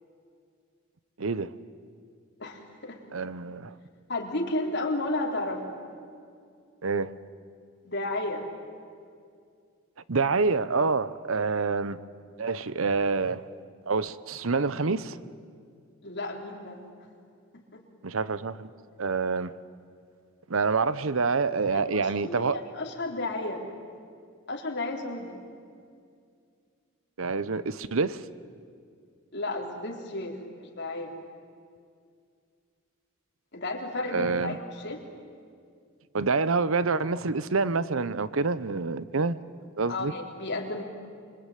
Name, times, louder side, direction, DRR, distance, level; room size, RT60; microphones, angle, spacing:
voice 1, 1.2-1.5 3.1-3.7 6.8-7.1 10.1-12.0 12.4-13.4 13.9-15.2 18.0-18.7 19.0-19.5 20.5-22.6 27.2-28.2 34.1-34.6 36.1-39.4 39.8-40.1, right 4 dB, 75° right, 0.9 m, -27 dB
voice 2, 2.4-3.0 4.1-5.8 7.8-8.5 16.0-16.8 17.7-17.8 21.7-23.6 24.5-25.4 29.3-31.1 33.5-35.0 39.9-40.8, left 2 dB, 55° left, 3.8 m, -33 dB
25.5 x 23.5 x 9.3 m
head